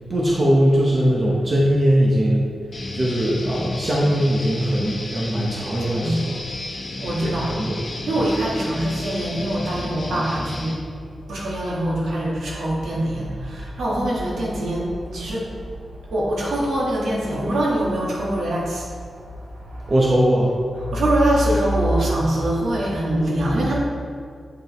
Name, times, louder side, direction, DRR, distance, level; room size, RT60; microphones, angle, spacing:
voice 1, 0.1-2.4 2.9-6.3 7.2-7.8 19.9-20.5, equal, 35° right, -4 dB, 1.0 m, -20 dB
Guitar, 2.7-10.8, left 2 dB, 35° left, 1.1 m, -32 dB
voice 2, 5.8-6.4 7.0-7.6 8.1-10.8 11.3-19.9 20.8-23.8, right 1 dB, 85° right, -4 dB, 1.7 m, -24 dB
8.7 x 5.3 x 3.2 m, 2.2 s
wide cardioid pair, 120°, 0 cm